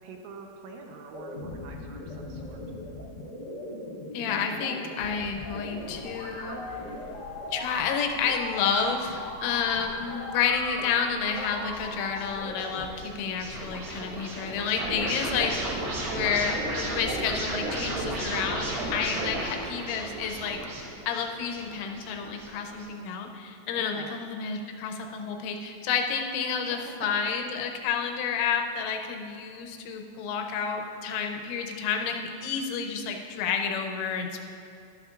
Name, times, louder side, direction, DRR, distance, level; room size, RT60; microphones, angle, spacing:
voice 1, 0.0-2.6 19.0-19.4 23.8-24.1 26.5-27.0, right 4 dB, 80° right, 2 dB, 2.8 m, -45 dB
sound 1, 1.1-12.9, left 2 dB, 50° left, 1.2 m, -38 dB
voice 2, 4.1-6.6 7.5-15.9 16.1-20.6 21.1-34.4, left 6 dB, 85° left, 4 dB, 3.2 m, -30 dB
sound 2, 5.7-14.3, left 1 dB, 65° left, 1.2 m, -49 dB
sound 3, 11.4-22.8, right 1 dB, 55° right, 3.2 m, -34 dB
12.0 x 11.5 x 2.4 m, 2.5 s
omnidirectional pair, 5.6 m